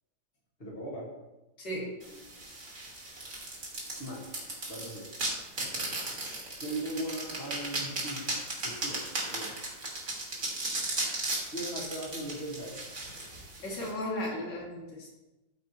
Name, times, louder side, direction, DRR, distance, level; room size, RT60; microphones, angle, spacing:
voice 1, 0.6-1.1 4.0-4.3 4.7-5.1 6.6-8.3 8.6-9.6 11.5-12.8, right 1 dB, 35° left, -4 dB, 2.2 m, -38 dB
voice 2, 1.6-2.2 6.0-6.4 13.6-15.1, left 1 dB, 85° left, -3 dB, 2.6 m, -36 dB
sound 1, 2.0-13.9, right 2 dB, 50° right, 2.3 m, -36 dB
13.0 x 5.1 x 3.1 m, 1.0 s
omnidirectional pair, 1.8 m